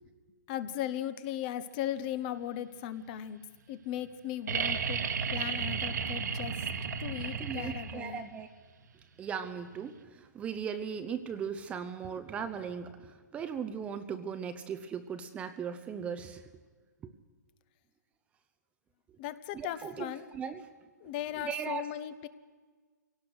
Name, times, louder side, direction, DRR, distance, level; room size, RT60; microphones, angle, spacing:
voice 1, 0.5-3.4 3.7-5.0 5.3-6.5 7.0-8.2 19.2-20.2 21.0-22.3, left 11 dB, 30° left, 14 dB, 1.0 m, -37 dB
sound 1, 4.5-8.2 9.9-10.0, right 6 dB, 65° right, 1.7 m, -33 dB
voice 2, 7.4-8.5 9.2-16.4 17.0-17.1 19.5-20.6 21.4-21.9, right 7 dB, 10° right, 9 dB, 0.7 m, -38 dB
25.0 x 17.5 x 6.4 m, 1.4 s
hypercardioid pair, 160°, 10 cm